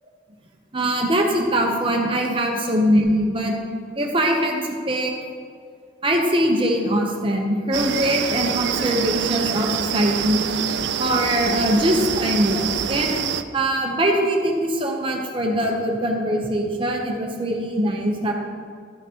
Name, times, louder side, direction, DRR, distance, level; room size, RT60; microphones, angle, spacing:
voice 1, 0.7-3.5 4.0-5.1 6.0-10.5 11.0-13.1 13.5-18.3, equal, 30° right, 1 dB, 0.9 m, -22 dB
sound 1, 7.7-13.4, right 8 dB, 70° right, 0.3 m, -26 dB
12.5 x 5.8 x 3.0 m, 2.1 s
head